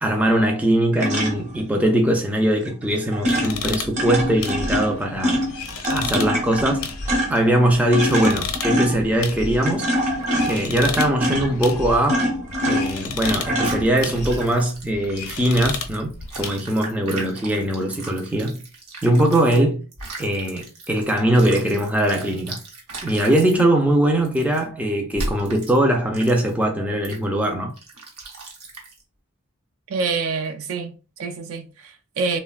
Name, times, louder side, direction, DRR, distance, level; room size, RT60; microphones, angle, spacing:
voice 1, 0.0-5.4 5.9-6.9 7.3-9.9 10.5-12.3 12.6-18.6 19.0-19.8 20.2-22.6 23.0-27.7, right 1 dB, 5° right, 0.3 m, -21 dB
sound 1, 0.9-1.6 2.7-2.8 3.1-14.4, equal, 30° right, 0.7 m, -25 dB
sound 2, 3.3-16.5, left 4 dB, 65° left, 0.5 m, -33 dB
sound 3, 13.6-19.6 19.9-23.6 24.2-24.6 25.1-25.8 26.1-26.6 27.0-27.2 27.8-29.0, right 2 dB, 90° right, 0.9 m, -37 dB
voice 2, 29.9-32.4, right 4 dB, 70° right, 0.4 m, -27 dB
3.2 x 2.0 x 2.3 m
head